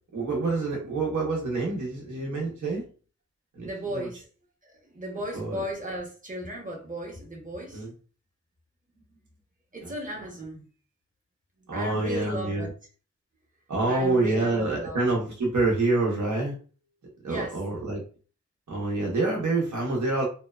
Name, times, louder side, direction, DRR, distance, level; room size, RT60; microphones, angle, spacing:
voice 1, 0.1-2.8 3.6-4.1 5.3-5.6 7.7-7.9 9.8-9.9 11.7-12.7 13.7-16.6 17.2-18.0 18.7-20.3, right 2 dB, 80° right, 0.8 m, -27 dB
voice 2, 3.6-4.2 4.6-7.8 9.7-10.7 11.7-12.7 13.9-15.0 17.3-17.5, right 1 dB, 25° right, 0.9 m, -35 dB
2.8 x 2.1 x 2.2 m
wide cardioid pair, 90°, 29 cm